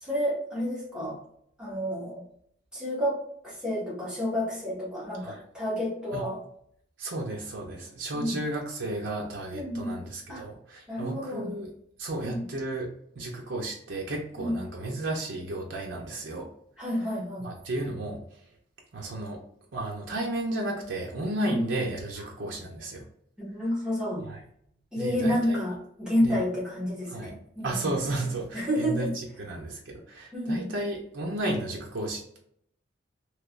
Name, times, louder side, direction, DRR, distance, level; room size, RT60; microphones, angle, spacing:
voice 1, 0.0-1.2 1.6-2.2 2.7-3.2 3.4-6.4 8.1-8.3 9.5-10.0 10.3-10.4 10.9-11.5 12.2-12.4 14.4-14.6 16.8-17.5 21.4-21.6 23.4-24.3 24.9-27.9 28.5-29.1 30.3-30.6, equal, 5° right, -8 dB, 1.4 m, -30 dB
voice 2, 7.0-11.7 12.0-12.9 13.2-16.5 17.4-18.2 18.9-19.4 19.7-23.0 24.3-24.4 25.0-25.7 26.2-26.4 27.1-27.3 27.6-32.4, right 1 dB, 80° right, -1 dB, 0.6 m, -33 dB
3.3 x 3.0 x 2.5 m, 0.69 s
head